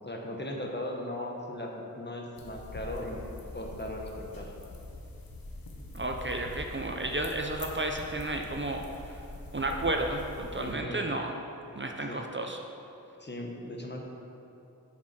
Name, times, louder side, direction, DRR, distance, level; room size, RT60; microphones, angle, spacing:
voice 1, 0.0-3.2 3.5-4.5 10.6-11.1 12.0-12.2 13.2-14.0, left 1 dB, 30° left, 0 dB, 1.1 m, -38 dB
sound 1, 2.4-10.7, left 2 dB, 85° left, 1.0 m, -43 dB
voice 2, 5.9-9.2 9.5-11.3 11.8-12.6, right 2 dB, 35° right, 2 dB, 0.6 m, -32 dB
7.1 x 5.2 x 5.9 m, 2.8 s
wide cardioid pair, 50°, 35 cm